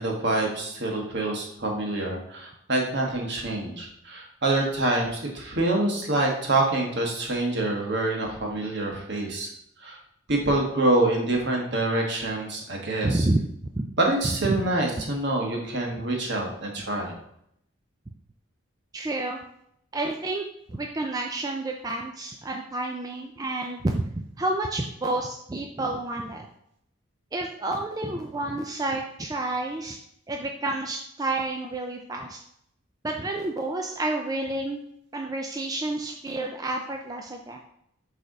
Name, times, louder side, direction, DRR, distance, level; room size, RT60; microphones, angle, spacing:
voice 1, 0.0-9.5 9.8-10.0 10.3-13.2 14.0-17.1, right 2 dB, 55° right, 0 dB, 1.4 m, -26 dB
voice 2, 13.0-13.4 13.8-13.9 14.4-14.6 18.9-19.4 19.9-26.5 27.3-30.0 30.3-32.4 33.0-34.8 35.1-37.6, right 2 dB, 20° right, 2 dB, 0.4 m, -29 dB
6.5 x 3.3 x 4.8 m, 0.74 s
head